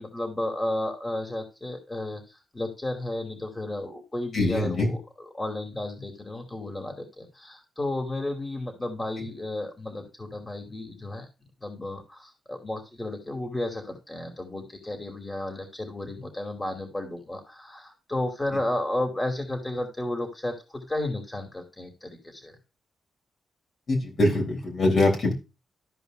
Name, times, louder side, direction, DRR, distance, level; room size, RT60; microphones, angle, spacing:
voice 1, 0.0-2.2 2.5-11.2 11.6-22.5, left 1 dB, 20° left, 3 dB, 2.6 m, -33 dB
voice 2, 4.3-4.9 23.9-25.3, left 2 dB, 60° left, 0 dB, 3.4 m, -23 dB
14.0 x 5.0 x 2.6 m, 0.28 s
supercardioid pair, 55°, 0 cm